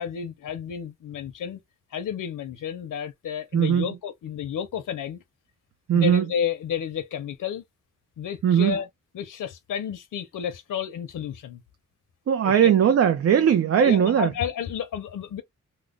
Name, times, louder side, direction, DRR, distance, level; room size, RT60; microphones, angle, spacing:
voice 1, 0.0-1.6 1.9-5.2 5.9-7.6 8.2-8.9 9.1-11.6 12.4-12.7 13.7-15.4, left 8 dB, 90° left, 0.7 m, -31 dB
voice 2, 3.5-3.9 5.9-6.2 8.4-8.7 12.3-14.3, right 9 dB, 50° right, 0.5 m, -19 dB
3.1 x 2.1 x 3.6 m
wide cardioid pair, 125°, 31 cm